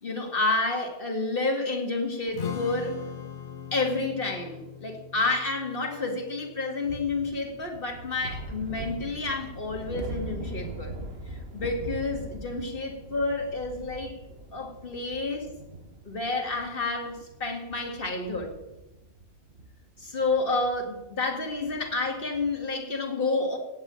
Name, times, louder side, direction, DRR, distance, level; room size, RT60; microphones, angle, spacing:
voice 1, 0.0-3.0 3.7-10.9 11.5-14.2 14.5-15.5 16.0-18.5 20.0-23.6, left 3 dB, 60° left, 2 dB, 2.5 m, -29 dB
Strum, 2.3-8.6, left 7 dB, 75° left, 1.4 m, -41 dB
sound 1, 6.8-22.6, right 2 dB, 75° right, 1.6 m, -42 dB
16.5 x 6.4 x 9.0 m, 1.0 s
omnidirectional pair, 1.1 m